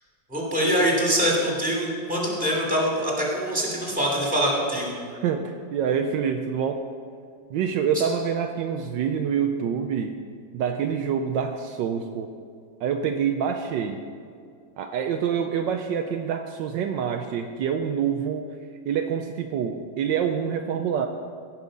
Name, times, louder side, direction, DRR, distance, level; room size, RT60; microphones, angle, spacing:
voice 1, 0.3-4.9, equal, 5° right, -3 dB, 2.7 m, -24 dB
voice 2, 5.1-6.9 7.5-10.1 10.5-12.3 12.8-14.0 14.8-18.5 18.8-21.1, right 7 dB, 75° right, 5 dB, 1.2 m, -26 dB
16.5 x 6.1 x 5.3 m, 2.2 s
omnidirectional pair, 2.1 m